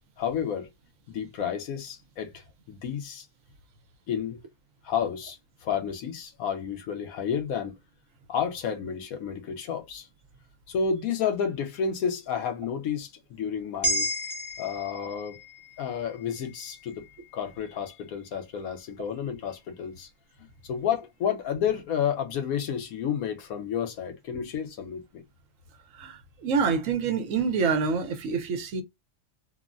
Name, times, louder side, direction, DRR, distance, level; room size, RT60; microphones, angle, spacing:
voice 1, 0.2-0.7 1.1-3.3 4.1-4.4 4.8-7.8 8.3-10.1 10.7-14.1 14.6-15.4 15.8-17.0 17.3-20.1 20.6-25.2, left 7 dB, 85° left, 1.2 m, -31 dB
sound 1, 13.8-18.3 18.7-18.9, right 1 dB, 20° left, 1.0 m, -34 dB
voice 2, 25.9-28.8, right 5 dB, 70° right, 1.1 m, -27 dB
3.5 x 2.0 x 2.4 m
omnidirectional pair, 1.5 m